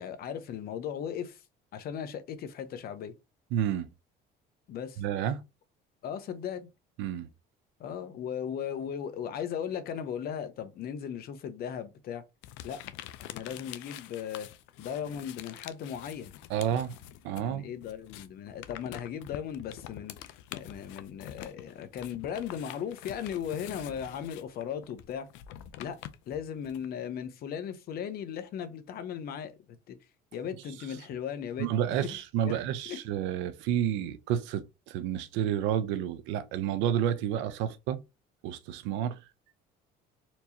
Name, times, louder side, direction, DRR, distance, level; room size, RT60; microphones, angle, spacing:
voice 1, 0.0-1.4 1.7-3.1 4.7-5.0 6.0-6.7 7.8-12.2 12.6-12.8 13.2-14.5 14.8-16.3 17.4-25.3 25.8-26.0 26.3-29.6 29.9-30.0 30.3-32.2 32.4-32.6 32.9-33.0, left 8 dB, 55° left, 0.7 m, -37 dB
voice 2, 3.5-3.9 5.0-5.4 7.0-7.3 16.5-17.0 17.2-17.7 31.6-38.0 38.4-39.2, right 10 dB, 85° right, 0.6 m, -30 dB
sound 1, 12.4-17.5 17.8-26.9, left 12 dB, 85° left, 0.5 m, -46 dB
4.4 x 2.9 x 2.7 m
cardioid pair, 135°, 19 cm